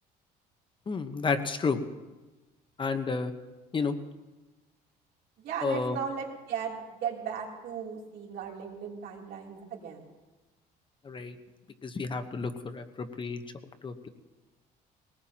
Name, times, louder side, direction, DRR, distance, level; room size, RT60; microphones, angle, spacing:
voice 1, 0.9-1.8 2.8-3.3 3.7-4.0 5.6-6.0 11.0-11.4 11.8-13.4 13.8-14.1, left 4 dB, 30° left, 7 dB, 1.0 m, -31 dB
voice 2, 5.4-10.0, right 7 dB, 70° right, -1 dB, 3.2 m, -36 dB
22.0 x 18.5 x 2.9 m, 1.1 s
cardioid pair, 110°, 17 cm